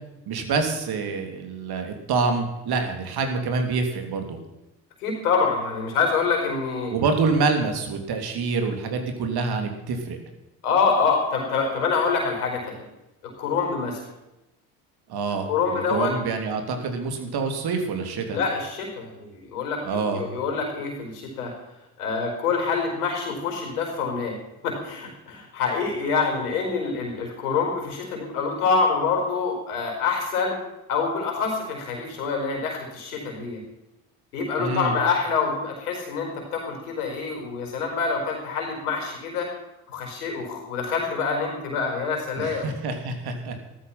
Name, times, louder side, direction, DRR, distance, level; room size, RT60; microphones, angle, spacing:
voice 1, 0.3-4.4 6.9-10.2 15.1-18.4 19.8-20.2 34.6-34.9 42.4-43.7, right 4 dB, 55° right, 5 dB, 3.2 m, -26 dB
voice 2, 5.0-6.9 10.6-12.8 13.4-14.0 15.5-16.1 18.3-21.5 22.0-24.4 24.6-30.6 30.9-33.6 34.3-39.5 39.9-42.6, left 5 dB, 85° left, 2 dB, 4.7 m, -26 dB
14.5 x 13.0 x 5.8 m, 0.95 s
hypercardioid pair, 60°, 44 cm